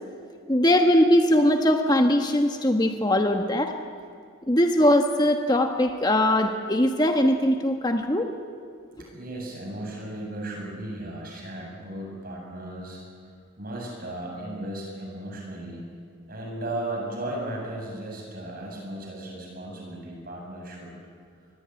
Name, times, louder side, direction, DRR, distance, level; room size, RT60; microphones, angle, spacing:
voice 1, 0.5-3.7 4.5-8.3, left 1 dB, 20° left, 4 dB, 1.2 m, -21 dB
voice 2, 9.1-15.8 16.3-20.9, right 1 dB, 45° right, -1 dB, 7.8 m, -36 dB
25.0 x 21.0 x 9.7 m, 2.2 s
head